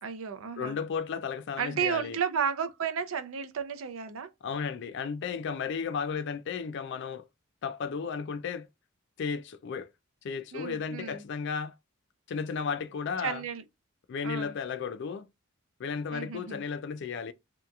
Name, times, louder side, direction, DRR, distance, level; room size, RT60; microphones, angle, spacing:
voice 1, 0.0-0.8 1.6-4.3 10.5-11.2 13.2-13.6 14.2-14.5 16.1-16.6, right 7 dB, 65° right, 0.4 m, -33 dB
voice 2, 0.6-2.2 4.4-7.3 7.6-8.7 9.2-9.9 10.2-11.7 12.3-13.4 14.1-15.3 15.8-17.3, left 6 dB, 55° left, 0.3 m, -34 dB
2.8 x 2.3 x 2.2 m
head